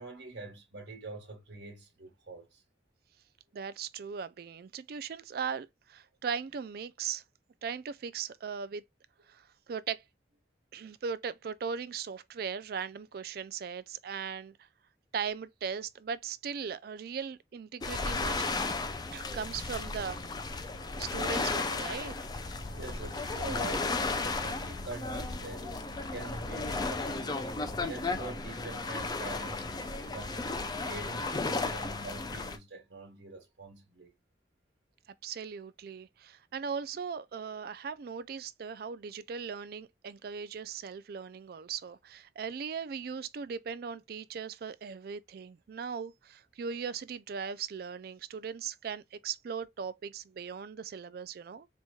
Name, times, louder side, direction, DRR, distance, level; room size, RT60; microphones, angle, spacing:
voice 1, 0.0-2.6 22.8-29.8 30.1-34.1, right 3 dB, 75° right, 1.4 m, -45 dB
voice 2, 3.5-7.2 7.6-8.8 9.3-10.0 10.7-14.5 15.1-18.5 19.1-20.2 21.0-22.1 35.2-51.7, right 6 dB, 55° right, 0.3 m, -38 dB
sound 1, 17.8-32.6, left 3 dB, 25° left, 0.4 m, -34 dB
sound 2, 20.0-31.8, equal, 70° left, 2.1 m, -54 dB
4.2 x 3.0 x 2.2 m
head